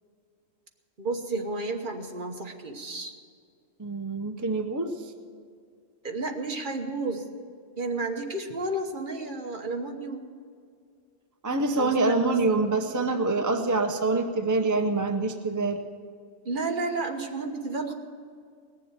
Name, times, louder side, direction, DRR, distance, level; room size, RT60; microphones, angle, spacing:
voice 1, 1.0-3.1 6.0-7.2 7.8-10.3 11.8-12.4 16.4-17.9, right 2 dB, 40° right, 4 dB, 1.3 m, -32 dB
voice 2, 3.8-5.1 11.4-15.8, right 3 dB, 20° right, 5 dB, 0.6 m, -26 dB
19.0 x 7.3 x 9.0 m, 2.2 s
omnidirectional pair, 1.3 m